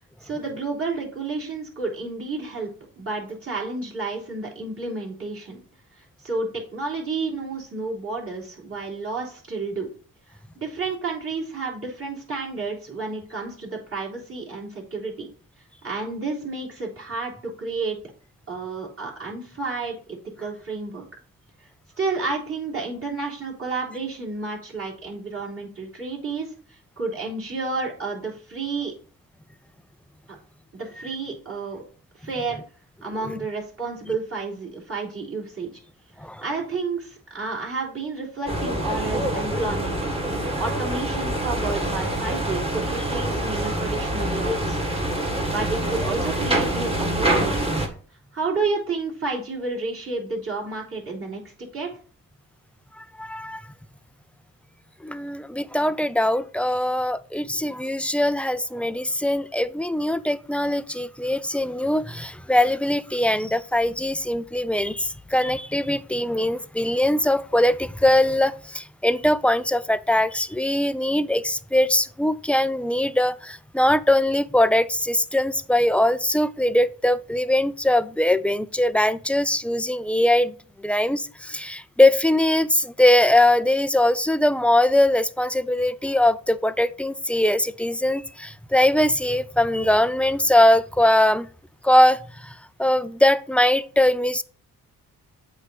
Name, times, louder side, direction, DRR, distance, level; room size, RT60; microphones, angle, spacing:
voice 1, 0.2-2.7 3.0-5.6 6.2-9.9 10.3-15.3 15.8-18.0 18.5-21.0 22.0-26.5 27.0-28.9 30.7-31.8 32.2-32.6 33.0-35.7 36.4-39.9 40.6-44.8 45.5-47.9 48.3-51.4 51.7-51.9, right 3 dB, 35° right, 3.4 m, -30 dB
sound 1, 38.5-47.9, right 1 dB, 15° right, 1.7 m, -25 dB
voice 2, 53.0-53.6 55.0-91.5 91.8-94.4, left 1 dB, 5° left, 0.3 m, -21 dB
7.9 x 2.8 x 6.0 m
cardioid pair, 65°, 37 cm